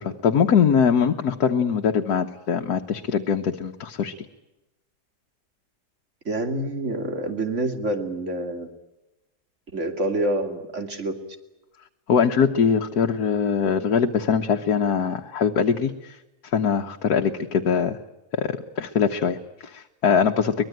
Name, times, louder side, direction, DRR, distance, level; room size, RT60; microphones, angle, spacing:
voice 1, 0.0-4.2 12.1-16.2 16.4-18.0 18.3-20.6, left 6 dB, 70° left, 4 dB, 1.6 m, -22 dB
voice 2, 6.2-8.7 9.7-11.2, right 1 dB, 45° right, 6 dB, 2.9 m, -27 dB
23.5 x 21.0 x 9.1 m, 1.0 s
omnidirectional pair, 1.7 m